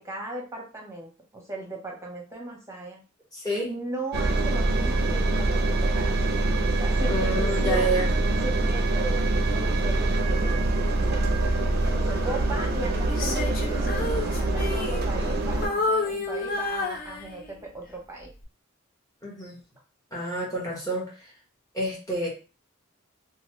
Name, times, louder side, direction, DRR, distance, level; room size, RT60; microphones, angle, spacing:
voice 1, 0.0-3.0 3.7-6.2 6.7-8.0 8.4-9.2 9.5-10.7 11.1-11.2 11.8-18.3, right 1 dB, 15° right, 0 dB, 0.9 m, -37 dB
voice 2, 3.3-3.7 7.1-8.1 12.1-12.4 19.2-19.6 20.1-21.3 21.7-22.3, right 1 dB, 20° left, -5 dB, 1.3 m, -29 dB
Engine, 4.1-15.7, right 2 dB, 50° right, 0.4 m, -24 dB
Female singing, 13.1-15.4 15.6-17.7 18.2-18.4, left 3 dB, 45° left, 0.6 m, -30 dB
3.0 x 2.4 x 3.0 m, 0.33 s
head